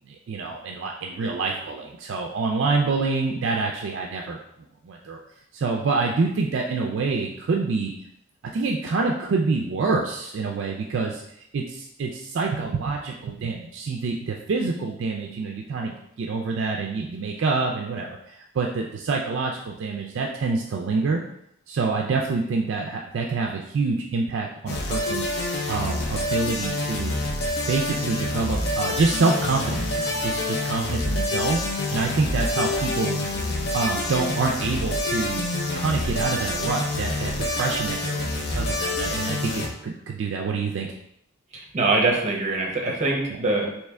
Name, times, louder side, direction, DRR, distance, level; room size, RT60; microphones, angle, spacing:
voice 1, 0.1-4.4 4.9-5.2 5.5-7.9 8.5-11.2 11.5-18.1 18.5-21.2 21.7-25.3 25.7-27.2 27.7-31.6 31.9-33.2 33.7-35.5 35.7-40.9, right 4 dB, 60° right, 1 dB, 0.3 m, -26 dB
sound 1, 24.7-39.7, left 2 dB, 50° left, 0.5 m, -27 dB
voice 2, 41.5-43.7, right 2 dB, 35° right, 0 dB, 0.7 m, -23 dB
3.2 x 2.9 x 3.5 m, 0.76 s
head